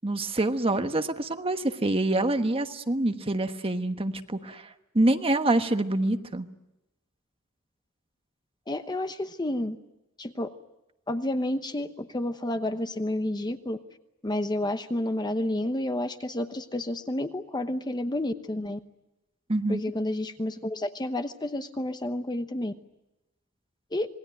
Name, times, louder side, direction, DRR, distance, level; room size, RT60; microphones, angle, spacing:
voice 1, 0.0-6.4 19.5-19.8, right 2 dB, 25° right, 7 dB, 1.3 m, -26 dB
voice 2, 8.7-9.8 10.2-10.5 11.1-13.8 14.2-18.8 19.7-22.7 23.9-24.1, left 1 dB, 20° left, 9 dB, 1.0 m, -30 dB
27.0 x 20.0 x 9.2 m, 0.95 s
head